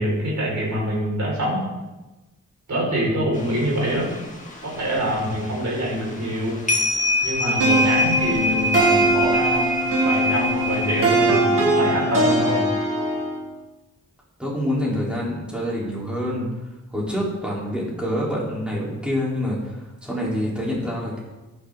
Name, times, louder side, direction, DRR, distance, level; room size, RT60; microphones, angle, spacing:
voice 1, 0.0-1.6 2.7-4.2 4.6-6.6 7.2-12.6, equal, 60° right, -4 dB, 5.3 m, -25 dB
sound 1, 3.4-4.2 4.5-4.9 5.2-5.3 6.0-6.4 6.7-11.4, equal, 25° left, 2.1 m, -24 dB
sound 2, 7.6-13.4, right 1 dB, 80° right, 4.2 m, -21 dB
voice 2, 14.4-16.5 16.9-21.2, equal, 5° right, -6 dB, 3.9 m, -26 dB
14.5 x 11.0 x 3.9 m, 1.1 s
wide cardioid pair, 150°, 32 cm